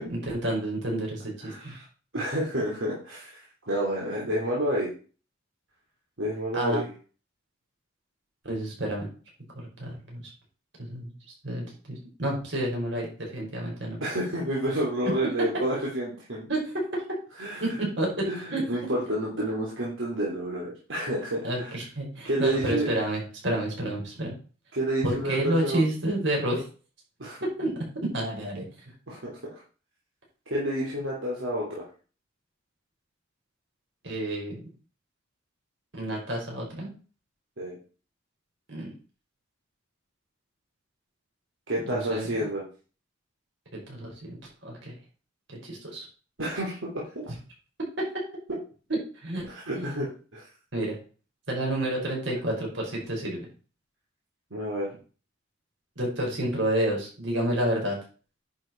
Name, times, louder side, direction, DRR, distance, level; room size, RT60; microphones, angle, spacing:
voice 1, 0.0-1.7 6.5-6.8 8.4-9.1 9.6-10.2 10.8-11.1 11.4-14.0 16.5-17.0 17.6-18.6 21.4-24.3 25.0-26.6 27.4-27.7 28.1-28.7 34.0-34.6 35.9-36.9 38.7-38.9 41.8-42.3 43.9-44.4 44.6-44.9 45.5-46.1 48.0-48.1 49.2-49.5 49.8-50.0 50.7-51.0 51.5-53.5 56.0-58.0, right 1 dB, 65° right, -2 dB, 5.2 m, -29 dB
voice 2, 1.4-1.8 2.1-4.9 6.2-6.9 14.0-16.5 17.4-17.6 18.3-21.7 22.2-22.9 24.7-25.8 27.2-27.4 29.1-29.4 30.5-31.8 37.6-37.8 41.7-42.6 46.4-46.9 47.1-47.2 49.4-50.4 54.5-54.9, right 1 dB, 80° right, -5 dB, 3.0 m, -29 dB
10.5 x 6.6 x 4.5 m, 0.37 s
head